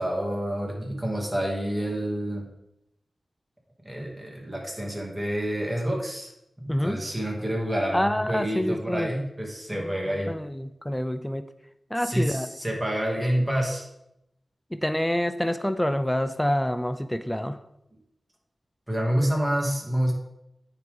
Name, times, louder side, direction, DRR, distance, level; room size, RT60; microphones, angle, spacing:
voice 1, 0.0-2.4 3.8-6.3 6.6-10.3 12.0-13.8 18.9-20.1, equal, 10° right, -2 dB, 2.5 m, -28 dB
voice 2, 6.7-7.0 7.9-9.1 9.7-11.5 11.9-12.5 14.7-17.6, left 1 dB, 10° left, 10 dB, 0.5 m, -27 dB
9.3 x 3.8 x 5.3 m, 0.84 s
wide cardioid pair, 65°, 0 cm